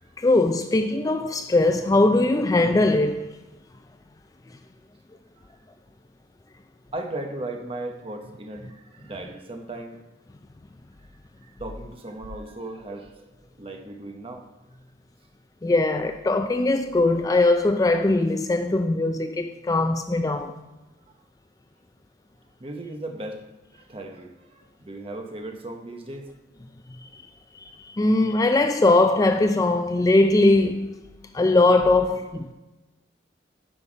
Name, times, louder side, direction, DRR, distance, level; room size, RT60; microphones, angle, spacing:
voice 1, 0.2-3.2 15.6-20.5 26.9-27.2 27.5-30.9 31.3-32.5, left 2 dB, 20° left, 0.3 m, -21 dB
voice 2, 6.9-10.0 11.4-14.5 22.6-23.4 23.7-26.3, right 2 dB, 30° right, 0.9 m, -37 dB
10.0 x 5.7 x 5.0 m
head